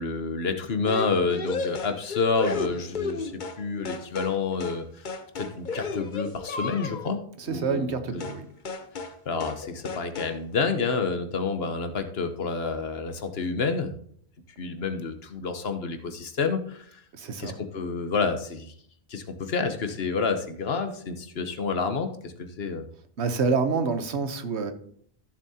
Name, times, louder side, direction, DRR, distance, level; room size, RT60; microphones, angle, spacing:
voice 1, 0.0-4.9 5.4-7.2 7.5-8.2 9.0-13.9 14.6-17.0 17.4-18.7 19.1-22.8, left 4 dB, 70° left, 8 dB, 1.2 m, -29 dB
sound 1, 0.9-3.6 3.9-4.4 4.6-4.8 5.1-7.1 8.2-8.4 8.7-9.2 9.4-9.6 9.9-10.4, left 4 dB, 50° left, 0.9 m, -33 dB
voice 2, 7.4-8.5 17.1-17.6 23.2-24.7, right 4 dB, 90° right, 9 dB, 1.2 m, -27 dB
14.5 x 7.4 x 2.8 m, 0.62 s
omnidirectional pair, 1.1 m